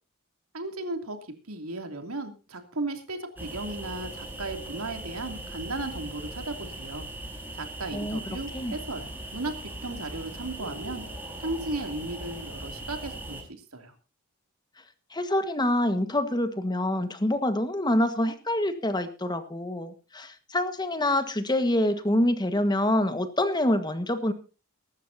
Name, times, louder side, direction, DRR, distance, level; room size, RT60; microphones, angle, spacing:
voice 1, 0.5-7.1 7.5-11.0 11.4-13.9, right 2 dB, 90° right, 5 dB, 2.8 m, -35 dB
sound 1, 3.4-13.4, right 1 dB, 10° right, 4.5 m, -39 dB
voice 2, 15.1-24.3, left 1 dB, 20° left, 9 dB, 1.5 m, -26 dB
23.5 x 12.0 x 2.8 m, 0.33 s
head